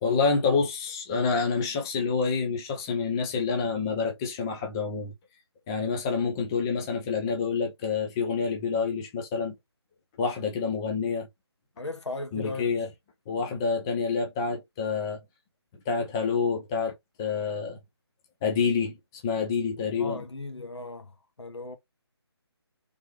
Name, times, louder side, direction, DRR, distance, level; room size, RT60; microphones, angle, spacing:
voice 1, 0.0-5.1 5.7-9.5 10.2-11.3 12.3-12.9 13.3-15.2 15.9-17.8 18.4-19.0 19.2-20.2, left 5 dB, 10° left, 0.4 m, -27 dB
voice 2, 11.8-12.8 19.9-21.1 21.4-21.8, left 2 dB, 90° left, 1.3 m, -36 dB
3.4 x 3.2 x 3.2 m
figure-of-eight pair, 160°, 14 cm